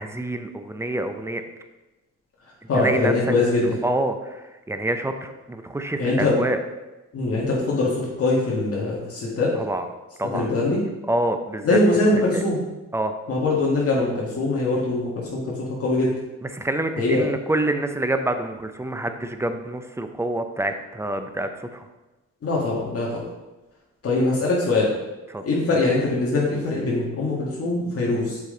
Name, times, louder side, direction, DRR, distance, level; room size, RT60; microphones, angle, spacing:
voice 1, 0.0-1.4 2.7-3.3 3.8-6.6 9.5-9.9 10.2-10.5 11.1-11.8 12.3-12.4 12.9-13.2 16.4-21.9 25.3-25.4, right 1 dB, 10° right, 7 dB, 0.6 m, -27 dB
voice 2, 2.7-3.7 6.0-6.4 7.1-9.5 10.3-10.8 11.6-12.6 13.3-16.1 17.0-17.2 22.4-23.2 24.0-24.9 25.4-28.4, left 2 dB, 50° left, -5 dB, 1.7 m, -22 dB
6.7 x 5.1 x 3.8 m, 1.1 s
cardioid pair, 90°, 30 cm